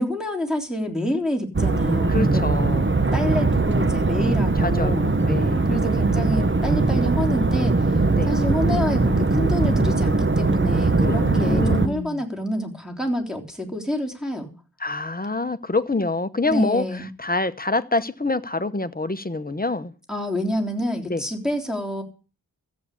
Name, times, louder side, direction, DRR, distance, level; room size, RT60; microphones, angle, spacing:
voice 1, 0.0-2.4 3.1-5.0 5.7-14.5 16.5-17.1 20.1-22.0, left 1 dB, ahead, 3.6 m, -27 dB
sound 1, 1.5-11.9, right 3 dB, 30° right, 1.2 m, -20 dB
voice 2, 2.1-2.8 4.6-5.6 8.2-8.3 11.0-12.2 14.8-16.9 17.2-19.9 21.0-21.2, left 3 dB, 25° left, 0.9 m, -26 dB
14.0 x 8.5 x 8.5 m
wide cardioid pair, 75°, 37 cm